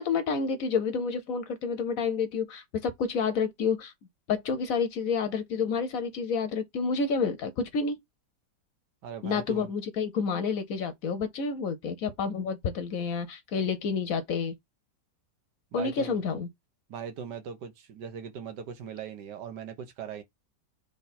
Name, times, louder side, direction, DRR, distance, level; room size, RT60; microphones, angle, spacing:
voice 1, 0.0-3.9 4.3-8.0 9.2-14.5 15.7-16.5, left 5 dB, 65° left, 1.0 m, -29 dB
voice 2, 9.0-9.7 15.7-16.2 16.9-20.2, right 7 dB, 80° right, 1.5 m, -39 dB
3.7 x 3.3 x 4.1 m
omnidirectional pair, 1.8 m